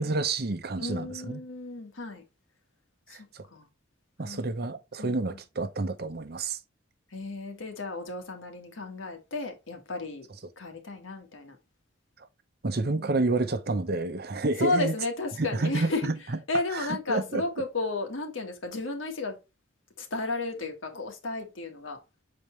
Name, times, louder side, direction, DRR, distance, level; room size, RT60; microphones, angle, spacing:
voice 1, 0.0-1.4 3.1-3.5 4.2-6.6 12.6-14.9 15.4-16.4 16.7-17.4, right 2 dB, 50° right, 0.7 m, -29 dB
voice 2, 0.8-2.2 3.1-3.2 3.5-3.7 4.2-4.4 5.0-5.4 7.1-10.3 10.6-11.6 12.9-13.1 14.6-16.1 16.5-19.4 20.0-22.0, left 2 dB, 80° left, 1.6 m, -33 dB
7.0 x 4.3 x 3.2 m
head